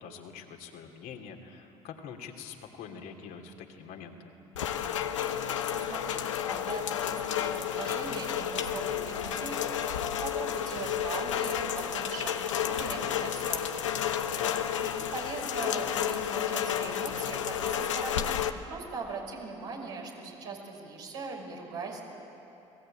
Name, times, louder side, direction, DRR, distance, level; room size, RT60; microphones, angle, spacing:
voice 1, 0.0-4.3 14.4-14.7, left 7 dB, 70° left, 3 dB, 2.8 m, -44 dB
Rain, 4.5-18.5, left 9 dB, 90° left, 0.9 m, -31 dB
voice 2, 5.7-6.2 6.5-9.6 10.2-12.4 12.7-13.9 14.8-18.3 18.7-22.0, right 4 dB, 80° right, -2 dB, 5.8 m, -40 dB
30.0 x 20.0 x 9.0 m, 2.9 s
hypercardioid pair, 55°, 15 cm